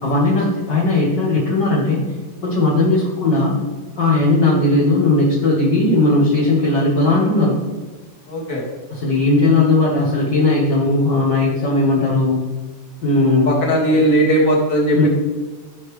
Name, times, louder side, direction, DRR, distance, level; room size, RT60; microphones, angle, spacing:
voice 1, 0.0-2.0 2.4-3.6 4.0-7.5 8.9-12.4 13.0-13.5 14.9-15.1, left 2 dB, 45° left, -6 dB, 1.5 m, -17 dB
voice 2, 8.3-8.6 13.5-15.1, right 1 dB, 30° left, -3 dB, 2.1 m, -17 dB
15.0 x 5.6 x 3.3 m, 1.3 s
omnidirectional pair, 3.8 m